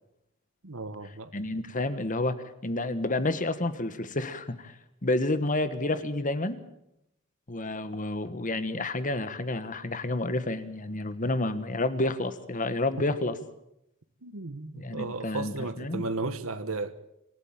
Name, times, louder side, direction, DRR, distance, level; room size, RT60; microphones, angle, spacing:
voice 1, 0.6-1.3 14.2-16.9, right 3 dB, 75° right, 1.3 m, -34 dB
voice 2, 1.3-4.7 5.0-6.6 7.5-13.4 14.7-16.1, left 2 dB, 40° left, 1.4 m, -30 dB
26.5 x 14.0 x 8.9 m
head